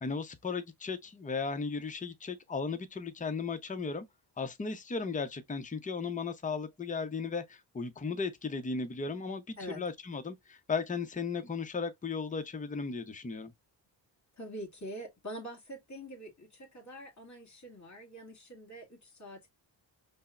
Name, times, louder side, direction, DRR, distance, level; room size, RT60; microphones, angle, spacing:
voice 1, 0.0-4.0 4.4-13.5, left 4 dB, 15° left, 0.6 m, -36 dB
voice 2, 14.4-19.5, right 1 dB, 35° left, 2.0 m, -45 dB
5.3 x 2.0 x 2.4 m
cardioid pair, 70°, 46 cm